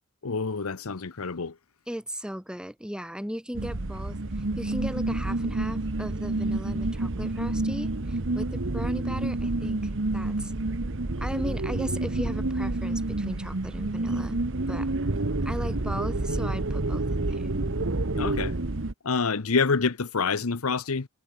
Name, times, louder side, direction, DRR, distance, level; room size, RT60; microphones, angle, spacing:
voice 1, 0.2-1.5 18.2-18.6 19.0-21.1, left 4 dB, 80° left, 0.9 m, -27 dB
voice 2, 1.9-10.5 11.2-14.4 14.7-14.9 15.4-17.5, equal, 5° right, 4.6 m, -37 dB
sound 1, 3.5-18.9, right 2 dB, 65° right, 1.3 m, -29 dB
head